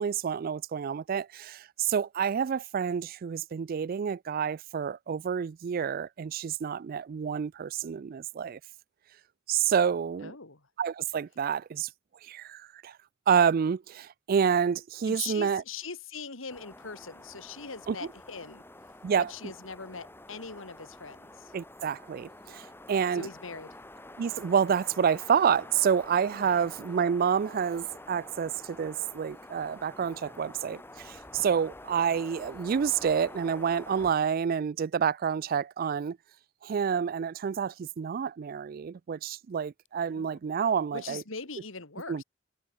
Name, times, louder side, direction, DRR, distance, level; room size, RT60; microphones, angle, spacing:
voice 1, 0.0-8.6 9.5-10.3 10.8-11.9 12.3-12.9 13.3-15.6 17.9-18.0 19.0-19.3 21.5-23.3 24.2-36.2 36.6-41.2 42.1-42.2, right 7 dB, 45° right, 0.3 m, -28 dB
voice 2, 10.2-10.6 15.1-18.6 19.3-21.5 23.1-23.8 26.4-26.7 40.1-40.4 40.9-42.2, left 5 dB, 85° left, 2.5 m, -41 dB
sound 1, 16.5-34.1, left 1 dB, 10° left, 3.8 m, -48 dB
head